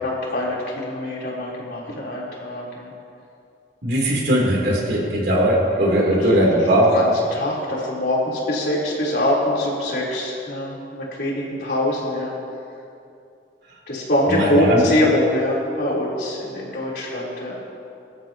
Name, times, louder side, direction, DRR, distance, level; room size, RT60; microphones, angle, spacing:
voice 1, 0.0-2.9 6.1-6.3 6.9-12.3 13.9-17.6, left 1 dB, 65° left, -5 dB, 4.1 m, -23 dB
voice 2, 3.8-6.9 14.3-14.8, right 1 dB, 70° right, -3 dB, 3.6 m, -19 dB
23.5 x 13.0 x 3.1 m, 2.6 s
head